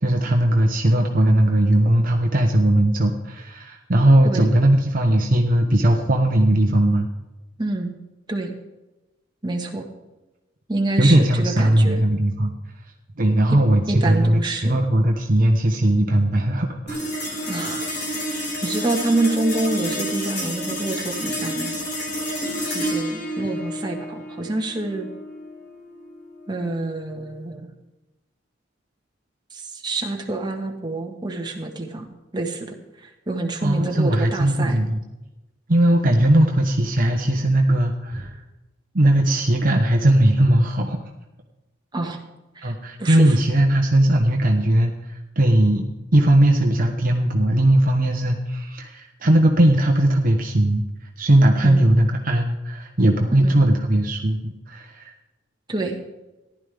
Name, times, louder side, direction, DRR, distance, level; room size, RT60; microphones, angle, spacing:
voice 1, 0.0-7.1 11.0-12.5 13.2-17.1 33.6-35.0 35.7-38.4 38.9-41.0 42.6-45.8 46.1-50.8 51.2-55.1, right 1 dB, 50° right, 3 dB, 1.0 m, -18 dB
voice 2, 7.6-7.9 8.3-8.5 9.4-9.8 10.7-12.0 13.5-13.6 13.9-14.8 17.5-17.9 18.2-21.7 22.7-25.1 26.5-27.7 29.5-32.1 32.3-34.8 41.9-42.2 42.5-42.7 43.0-43.4 51.6-51.8 53.4-53.6 55.7-56.0, right 2 dB, 25° right, 1 dB, 1.5 m, -27 dB
sound 1, 16.9-27.5, equal, 60° left, 3.7 m, -30 dB
15.0 x 11.0 x 3.5 m, 1.0 s
head